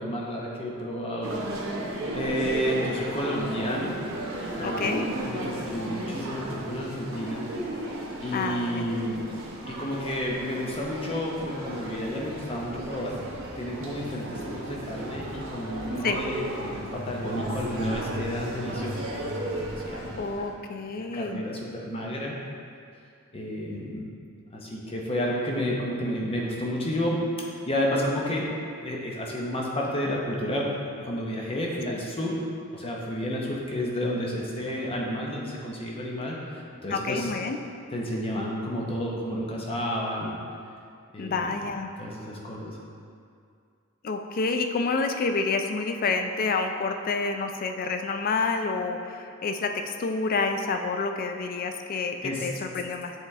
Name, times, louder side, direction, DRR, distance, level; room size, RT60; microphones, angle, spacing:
voice 1, 0.0-1.4 2.1-4.0 4.6-7.4 8.2-9.3 9.7-13.2 13.5-19.1 19.4-20.1 21.0-22.3 23.3-24.1 24.5-28.5 28.8-30.7 31.0-32.4 32.7-37.3 37.9-40.3 41.1-41.5 42.0-42.8 52.2-52.5, equal, 25° left, -3 dB, 0.8 m, -31 dB
sound 1, 1.2-20.5, right 1 dB, 60° right, 0.8 m, -35 dB
voice 2, 4.6-5.1 8.3-8.9 16.0-16.2 20.2-21.4 31.9-32.0 36.9-37.6 41.2-41.9 44.0-53.1, left 4 dB, 40° left, 5 dB, 0.4 m, -28 dB
8.1 x 3.3 x 3.5 m, 2.3 s
head